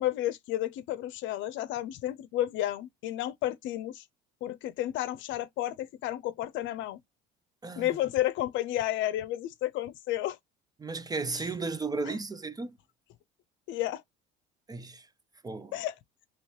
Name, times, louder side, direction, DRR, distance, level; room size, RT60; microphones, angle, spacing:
voice 1, 0.0-4.0 4.4-7.0 7.8-10.4 12.0-12.1 13.7-14.0 15.7-15.9, left 13 dB, 65° left, 0.6 m, -31 dB
voice 2, 10.8-12.8 14.7-15.1 15.4-15.7, right 3 dB, 20° right, 0.5 m, -34 dB
3.1 x 3.0 x 2.9 m
supercardioid pair, 80°, 21 cm